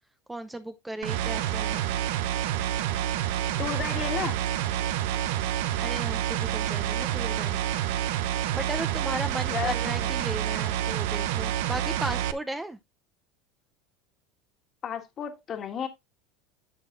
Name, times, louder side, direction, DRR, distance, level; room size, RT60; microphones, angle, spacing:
voice 1, 0.3-1.8 5.8-7.6 8.5-12.8, right 1 dB, 10° right, 0.6 m, -36 dB
sound 1, 1.0-12.3, right 11 dB, 75° right, 0.7 m, -28 dB
voice 2, 3.6-4.4 9.5-10.1 14.8-15.9, left 8 dB, 35° left, 1.7 m, -33 dB
10.5 x 6.8 x 2.5 m
supercardioid pair, 115°, 0 cm